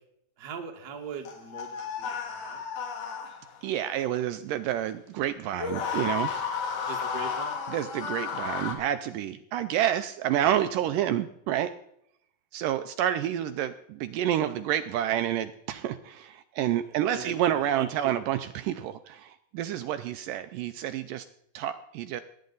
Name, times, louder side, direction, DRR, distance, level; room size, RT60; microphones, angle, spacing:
voice 1, 0.4-1.7 2.0-2.6 6.8-7.6 16.8-18.1, right 5 dB, 50° right, 3 dB, 1.2 m, -41 dB
sound 1, 1.3-3.7 5.5-8.7, left 6 dB, 65° left, 3.1 m, -33 dB
voice 2, 3.6-6.3 7.7-11.7 12.5-21.3 21.5-22.2, right 11 dB, 80° right, 10 dB, 2.0 m, -29 dB
18.5 x 9.3 x 3.9 m, 0.72 s
omnidirectional pair, 4.2 m